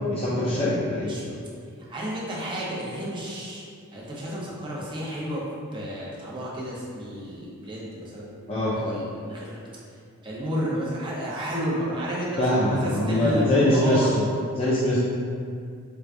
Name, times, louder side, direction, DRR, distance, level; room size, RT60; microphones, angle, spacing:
voice 1, 0.1-1.1 8.5-8.8 12.4-14.2 14.6-15.0, left 1 dB, 25° left, -9 dB, 0.4 m, -23 dB
voice 2, 0.9-1.3 1.8-3.6 3.9-5.4 5.7-8.3 8.7-9.6 10.2-14.2, equal, 20° right, -6 dB, 0.6 m, -31 dB
4.6 x 2.3 x 2.5 m, 2.3 s
head